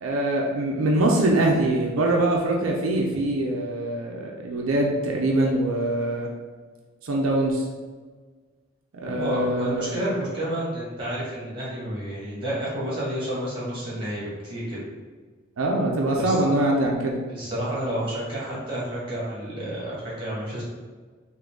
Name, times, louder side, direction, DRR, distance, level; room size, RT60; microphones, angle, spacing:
voice 1, 0.0-6.3 7.0-7.7 8.9-10.0 15.6-17.2, right 1 dB, 85° right, -1 dB, 0.5 m, -23 dB
voice 2, 9.0-14.8 16.1-16.4 17.3-20.6, right 1 dB, 25° right, -7 dB, 1.4 m, -30 dB
3.8 x 2.6 x 3.4 m, 1.5 s
head